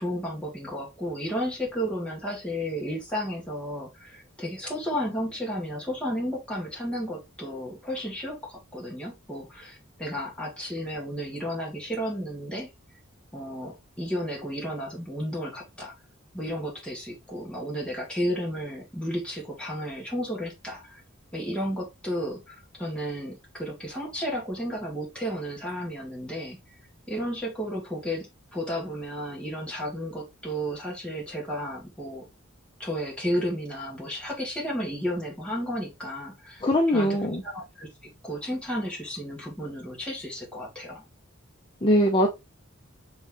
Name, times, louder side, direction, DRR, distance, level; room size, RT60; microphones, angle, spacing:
voice 1, 0.0-12.7 13.3-15.9 16.3-21.0 21.3-26.6 27.1-32.2 32.8-36.6 36.9-37.2 37.4-37.9 38.2-41.0, equal, 5° left, 1.4 m, -33 dB
voice 2, 36.6-37.4 41.8-42.3, equal, 25° left, 0.6 m, -21 dB
3.7 x 3.1 x 3.4 m
head